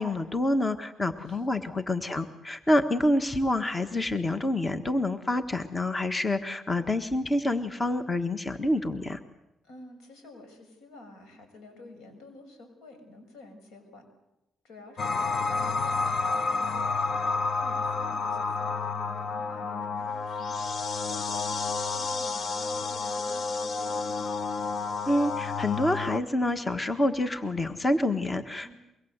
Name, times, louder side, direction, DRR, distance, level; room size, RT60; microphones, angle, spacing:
voice 1, 0.0-9.2 25.1-28.7, left 1 dB, 20° left, 9 dB, 1.4 m, -27 dB
voice 2, 1.3-1.7 9.6-14.0 14.6-20.5 21.1-24.4 28.6-28.7, left 2 dB, 85° left, 7 dB, 6.4 m, -50 dB
sound 1, 15.0-26.2, left 4 dB, 50° left, 1.1 m, -30 dB
24.0 x 23.5 x 8.1 m, 0.94 s
cardioid pair, 90°, 0 cm